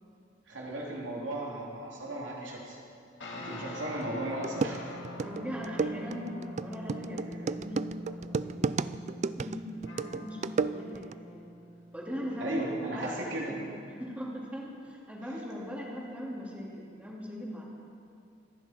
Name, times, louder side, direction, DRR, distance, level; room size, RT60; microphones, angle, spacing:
voice 1, 0.5-2.8 3.3-5.0 12.4-13.5, right 1 dB, 90° right, -3 dB, 3.2 m, -36 dB
sound 1, 3.2-12.9, left 1 dB, 70° left, 2.5 m, -44 dB
sound 2, 4.0-4.1 4.4-11.1, right 4 dB, 40° right, 0.3 m, -33 dB
voice 2, 5.2-11.4 11.9-12.6 12.9-13.6 14.0-17.6, equal, 10° right, -4 dB, 2.8 m, -40 dB
26.5 x 10.5 x 4.5 m, 2.5 s
head